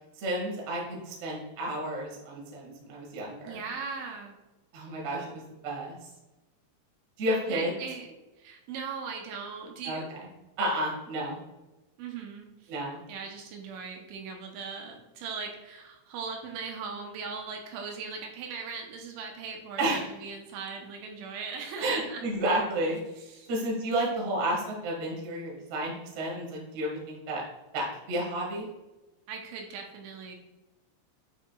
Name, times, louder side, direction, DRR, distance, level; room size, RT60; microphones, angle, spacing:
voice 1, 0.2-3.6 4.7-5.9 7.2-7.7 9.8-10.2 10.6-11.4 12.7-13.0 19.8-20.1 21.8-23.0 23.5-27.4 27.7-28.7, right 1 dB, 50° right, -3 dB, 2.2 m, -31 dB
voice 2, 3.5-4.4 7.3-10.1 12.0-12.7 13.1-22.2 23.2-23.5 29.3-30.4, right 5 dB, 85° right, 2 dB, 3.1 m, -39 dB
8.7 x 5.0 x 2.3 m, 1.1 s
omnidirectional pair, 5.4 m